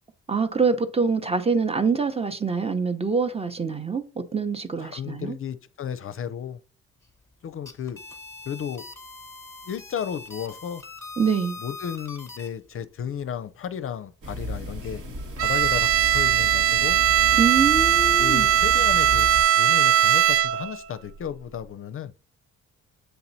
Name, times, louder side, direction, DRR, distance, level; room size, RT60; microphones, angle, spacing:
voice 1, 0.3-5.4 11.2-11.6 17.4-18.5, right 5 dB, 20° right, 0.8 m, -25 dB
voice 2, 4.8-6.6 7.4-8.0 8.5-8.9 9.6-10.8 11.6-15.0 15.4-17.0 18.2-19.3 19.6-22.1, left 8 dB, 45° left, 0.5 m, -33 dB
sound 1, 7.5-12.5, left 3 dB, 10° left, 1.2 m, -42 dB
sound 2, 14.2-19.4, equal, 75° right, 1.9 m, -34 dB
Bowed string instrument, 15.4-20.8, right 11 dB, 50° right, 0.4 m, -20 dB
7.9 x 2.9 x 4.0 m
cardioid pair, 90°, 30 cm